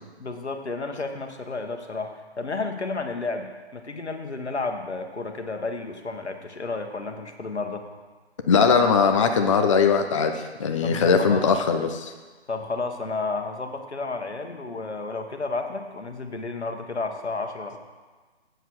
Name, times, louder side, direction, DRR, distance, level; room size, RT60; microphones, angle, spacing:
voice 1, 0.2-7.8 10.8-11.4 12.5-17.8, left 3 dB, 85° left, 5 dB, 1.3 m, -32 dB
voice 2, 8.5-12.1, left 5 dB, 30° left, 6 dB, 0.5 m, -20 dB
8.0 x 6.8 x 6.3 m, 1.3 s
figure-of-eight pair, 140°, 33 cm